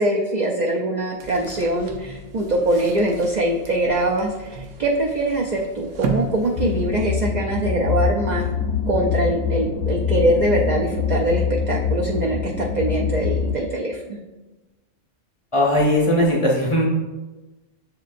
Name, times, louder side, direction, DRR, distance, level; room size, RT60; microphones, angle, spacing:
voice 1, 0.0-8.5 8.9-14.2, right 1 dB, 60° right, -1 dB, 0.4 m, -23 dB
sound 1, 1.2-7.4, right 3 dB, 80° right, 1.0 m, -33 dB
sound 2, 6.6-13.6, left 6 dB, 65° left, 0.8 m, -24 dB
voice 2, 15.5-16.9, left 1 dB, 35° left, -4 dB, 0.5 m, -18 dB
7.2 x 3.0 x 2.5 m, 1.1 s
omnidirectional pair, 1.3 m